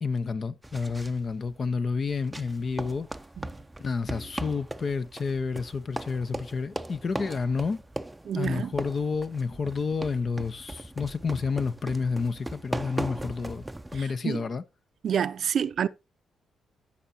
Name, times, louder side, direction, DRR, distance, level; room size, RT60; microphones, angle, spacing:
voice 1, 0.0-3.1 3.8-7.8 8.3-13.7 13.9-14.6, left 5 dB, 45° left, 0.8 m, -30 dB
sound 1, 0.6-14.0, right 1 dB, 10° right, 0.6 m, -39 dB
voice 2, 8.3-8.7 13.9-14.4 15.0-15.9, right 8 dB, 65° right, 0.6 m, -28 dB
15.0 x 5.7 x 2.8 m
cardioid pair, 85°, 0 cm